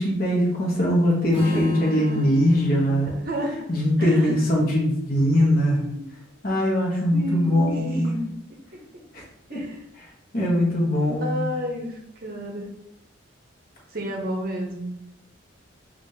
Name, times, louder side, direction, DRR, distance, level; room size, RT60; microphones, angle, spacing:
voice 1, 0.0-3.1 3.7-5.8 6.4-8.0 9.1-9.2 9.5-9.6 10.3-11.5, equal, 45° left, -3 dB, 1.1 m, -21 dB
Strum, 1.3-5.5, left 1 dB, 30° left, 0.7 m, -37 dB
voice 2, 1.5-2.3 3.2-3.5 4.0-4.3 5.1-5.2 5.7-6.1 7.1-8.3 8.7-8.8 9.5-9.8 11.2-12.7 13.9-14.9, equal, 45° right, 1 dB, 0.7 m, -31 dB
5.1 x 2.5 x 2.7 m, 0.79 s
head